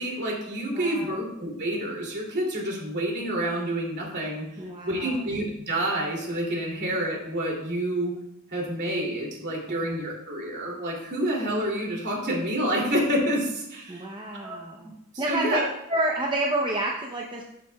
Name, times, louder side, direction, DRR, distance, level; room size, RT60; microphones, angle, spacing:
voice 1, 0.0-4.5 4.8-8.1 8.5-14.1 14.3-14.6 15.1-15.6, right 1 dB, 50° right, -2 dB, 2.7 m, -28 dB
voice 2, 0.7-1.2 4.6-5.2 9.7-9.9 13.9-14.9 15.2-15.6 15.9-17.4, right 1 dB, 20° right, -1 dB, 0.7 m, -29 dB
12.0 x 8.3 x 2.3 m, 0.80 s
head